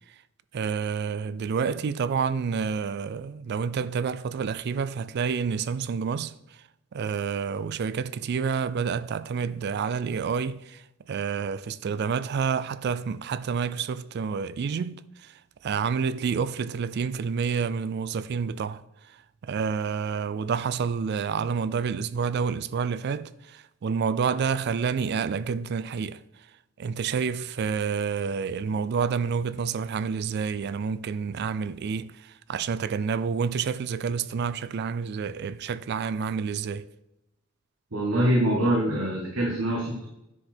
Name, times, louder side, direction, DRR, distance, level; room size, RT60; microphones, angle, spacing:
voice 1, 0.5-6.3 6.9-10.8 11.1-15.0 15.6-18.8 19.4-26.2 26.8-32.1 32.5-36.8, right 6 dB, 55° right, 0.3 m, -28 dB
voice 2, 37.9-40.1, right 1 dB, 70° right, 1.4 m, -24 dB
9.7 x 4.9 x 4.3 m
head